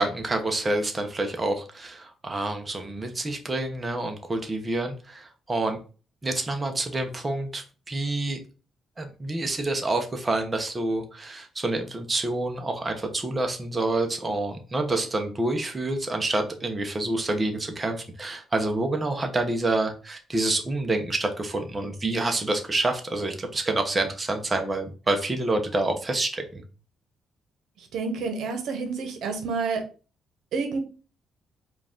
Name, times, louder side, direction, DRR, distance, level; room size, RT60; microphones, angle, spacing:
voice 1, 0.0-5.8 6.2-8.4 9.0-26.6, right 2 dB, 25° right, 4 dB, 0.9 m, -27 dB
voice 2, 27.9-29.8 30.5-30.8, right 4 dB, 75° right, 5 dB, 1.0 m, -29 dB
4.5 x 2.5 x 3.7 m, 0.35 s
cardioid pair, 90°, 0 cm